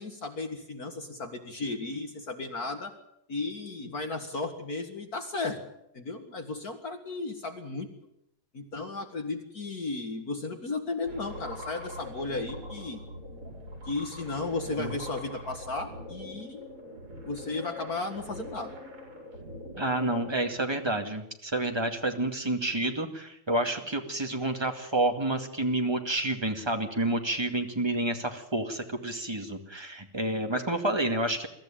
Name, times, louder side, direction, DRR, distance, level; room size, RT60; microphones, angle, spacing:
voice 1, 0.0-2.9 3.3-5.6 5.9-7.9 8.5-13.0 13.9-16.7 17.2-18.7, left 3 dB, 45° left, 5 dB, 2.2 m, -34 dB
sound 1, 11.1-20.5, left 1 dB, 85° right, 6.4 m, -43 dB
voice 2, 19.8-31.5, right 2 dB, 10° right, 4 dB, 2.0 m, -29 dB
23.0 x 14.0 x 9.0 m, 0.80 s
omnidirectional pair, 2.4 m